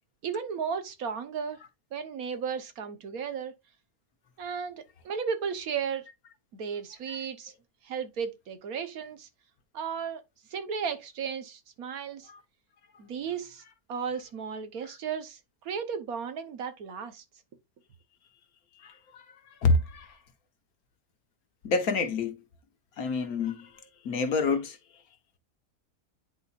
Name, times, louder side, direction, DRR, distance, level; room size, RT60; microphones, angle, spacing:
voice 1, 0.2-1.6 1.9-3.5 4.4-6.0 6.5-7.5 7.8-9.3 9.7-10.2 10.5-12.3 13.0-13.6 13.9-15.4 15.6-17.2, right 6 dB, 85° right, 1.5 m, -34 dB
voice 2, 18.8-19.2 19.6-20.1 21.6-22.4 23.0-23.7 24.1-24.8, left 3 dB, 85° left, 1.6 m, -27 dB
10.0 x 4.1 x 2.4 m
omnidirectional pair, 1.5 m